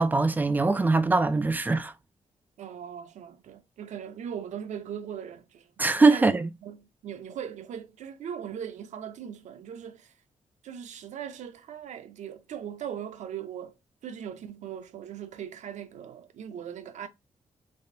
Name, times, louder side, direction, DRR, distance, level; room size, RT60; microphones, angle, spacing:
voice 1, 0.0-1.9 5.8-6.5, right 3 dB, 15° right, 0.3 m, -22 dB
voice 2, 2.6-5.7 6.1-10.1 10.6-13.8 14.0-17.1, right 8 dB, 90° right, 0.5 m, -39 dB
3.4 x 3.3 x 2.7 m
wide cardioid pair, 160°, 12 cm